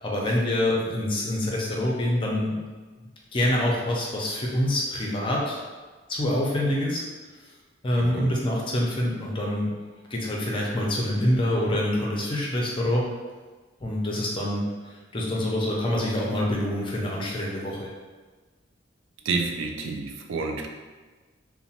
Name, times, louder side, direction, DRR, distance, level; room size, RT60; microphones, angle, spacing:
voice 1, 0.0-2.6 3.3-5.6 6.1-7.0 7.8-9.7 10.1-13.0 13.8-14.6 15.1-17.9, left 1 dB, 25° left, -2 dB, 0.5 m, -26 dB
voice 2, 19.3-20.7, right 4 dB, 70° right, 3 dB, 0.3 m, -29 dB
2.9 x 2.1 x 2.8 m, 1.3 s
head